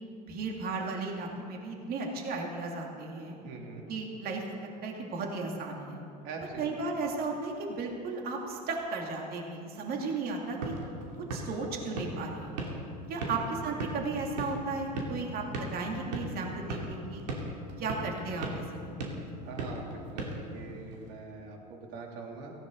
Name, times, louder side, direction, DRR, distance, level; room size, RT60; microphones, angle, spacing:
voice 1, 0.2-3.3 3.9-6.0 6.6-10.8 11.3-12.5 13.1-15.4 15.7-17.3 17.8-18.9, right 3 dB, 45° right, 0 dB, 2.6 m, -35 dB
voice 2, 3.4-3.8 6.2-6.7 13.2-13.7 19.4-22.5, right 3 dB, 60° right, 0 dB, 3.1 m, -43 dB
sound 1, 10.3-21.1, right 1 dB, 80° right, 2.7 m, -39 dB
17.5 x 16.0 x 4.0 m, 2.5 s
hypercardioid pair, 90°, 21 cm